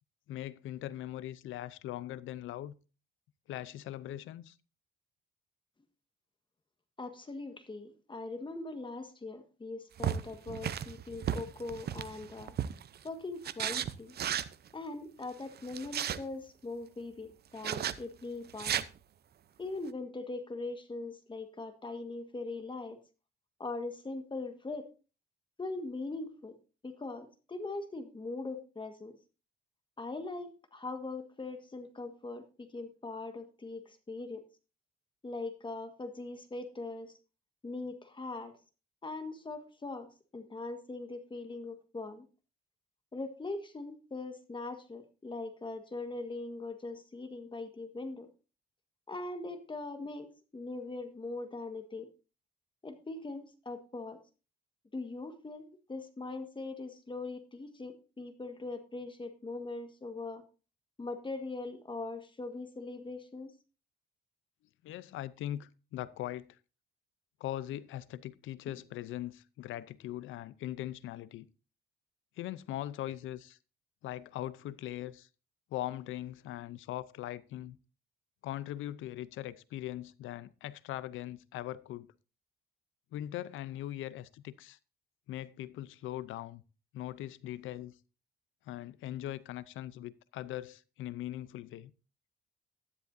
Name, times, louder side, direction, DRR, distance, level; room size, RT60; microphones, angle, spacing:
voice 1, 0.3-2.7 3.5-4.6 64.8-66.6 67.4-71.5 72.4-73.6 74.0-75.3 75.7-77.8 78.4-82.1 83.1-84.8 85.3-86.6 86.9-87.9 88.7-91.9, left 13 dB, 85° left, 0.6 m, -40 dB
voice 2, 7.0-12.5 13.0-14.2 14.7-18.8 19.6-23.0 23.6-24.9 25.6-26.6 26.8-29.2 30.0-34.4 35.2-37.1 37.6-38.5 39.0-40.1 40.3-42.2 43.1-48.3 49.1-52.1 52.8-54.2 54.9-60.4 61.0-63.5, left 3 dB, 25° left, 1.6 m, -41 dB
sound 1, 10.0-13.0 13.4-14.5 15.6-16.2 17.6-18.0 18.5-18.8, right 9 dB, 55° right, 0.7 m, -34 dB
12.5 x 11.0 x 2.7 m
cardioid pair, 90°, 20 cm